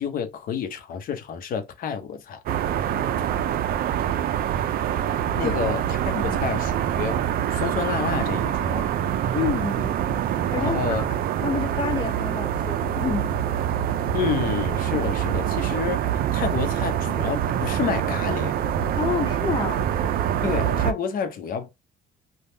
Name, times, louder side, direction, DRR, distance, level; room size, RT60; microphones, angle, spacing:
voice 1, 0.0-2.4 5.4-7.2 7.5-8.9 10.6-11.1 14.1-18.6 20.4-21.7, left 7 dB, 60° left, 0.8 m, -29 dB
sound 1, 2.5-20.9, right 10 dB, 60° right, 0.5 m, -25 dB
voice 2, 9.3-10.0 10.5-11.1 11.4-13.3 19.0-19.8, left 6 dB, 30° left, 0.4 m, -28 dB
3.4 x 2.3 x 2.7 m
cardioid pair, 110°, 17 cm